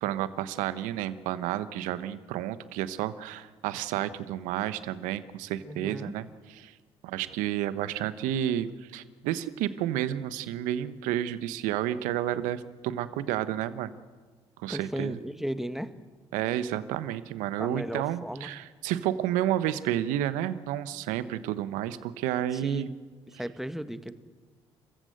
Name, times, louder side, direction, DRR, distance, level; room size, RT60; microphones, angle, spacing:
voice 1, 0.0-6.7 7.0-13.9 14.6-15.2 16.3-22.9, right 12 dB, 75° right, 13 dB, 1.2 m, -31 dB
voice 2, 5.7-6.1 14.7-15.9 17.6-18.5 22.5-22.9 23.3-24.1, equal, ahead, 10 dB, 1.8 m, -35 dB
30.0 x 15.0 x 7.9 m, 1.5 s
hypercardioid pair, 50°, 13 cm